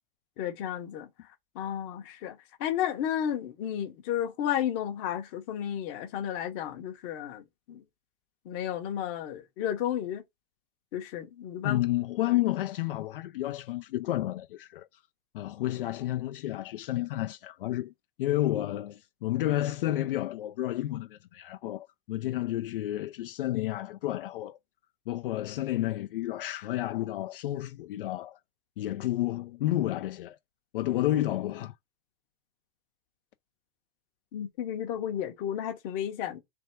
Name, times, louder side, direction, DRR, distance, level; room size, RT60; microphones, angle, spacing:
voice 1, 0.4-1.1 1.5-7.8 8.4-10.2 10.9-11.8 34.3-36.4, left 10 dB, 25° left, 0.8 m, -32 dB
voice 2, 11.6-14.9 15.3-17.9 18.2-24.6 25.1-28.4 28.8-30.4 30.7-31.7, left 14 dB, 60° left, 0.5 m, -31 dB
3.4 x 3.3 x 4.4 m
supercardioid pair, 180°, 31 cm